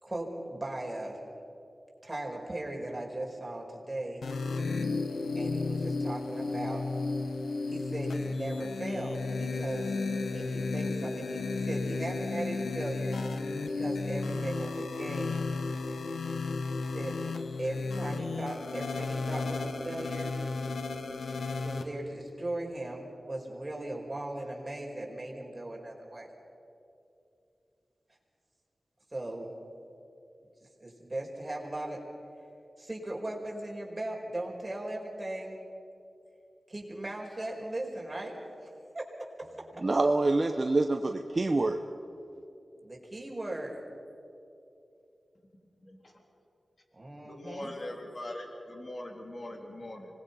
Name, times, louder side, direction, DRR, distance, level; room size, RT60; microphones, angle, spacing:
voice 1, 0.0-1.2 2.0-4.2 5.3-6.8 7.7-9.9 10.3-13.2 13.7-15.4 16.9-17.2 17.6-20.3 21.6-26.3 29.1-29.5 30.8-32.1 32.8-35.6 36.7-38.4 38.6-39.6 42.8-43.8 46.9-47.7, right 1 dB, 30° right, -1 dB, 4.9 m, -38 dB
sound 1, 4.2-21.8, left 3 dB, 90° left, 1.3 m, -33 dB
voice 2, 39.8-41.8, right 2 dB, 45° right, 4 dB, 0.9 m, -26 dB
voice 3, 47.2-50.1, left 1 dB, 50° left, 2 dB, 3.4 m, -41 dB
25.5 x 20.0 x 5.7 m, 2.7 s
cardioid pair, 45°, 0 cm